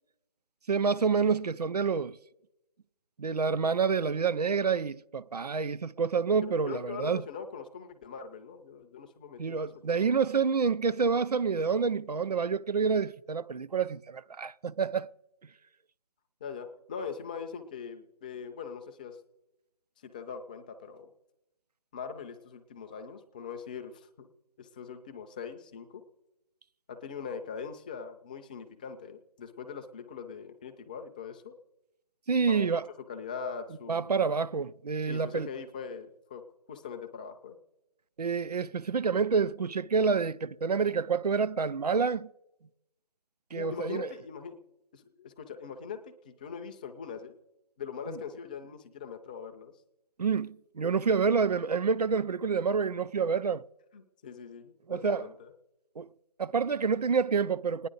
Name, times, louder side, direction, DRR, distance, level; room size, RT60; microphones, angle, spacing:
voice 1, 0.7-2.2 3.2-7.2 9.4-15.1 32.3-32.8 33.9-35.5 38.2-42.3 43.5-44.1 48.1-48.2 50.2-53.6 54.9-55.3 56.0-56.1 56.4-57.9, right 5 dB, 85° right, 0.6 m, -28 dB
voice 2, 6.4-10.2 16.4-19.2 20.0-21.1 21.9-24.3 24.6-26.0 26.9-31.5 32.5-32.7 33.1-34.2 35.1-36.4 36.7-37.6 43.5-44.6 44.9-47.4 47.8-49.7 53.9-55.5, left 6 dB, 15° left, 0.4 m, -42 dB
29.0 x 10.0 x 3.9 m
figure-of-eight pair, 155°, 20 cm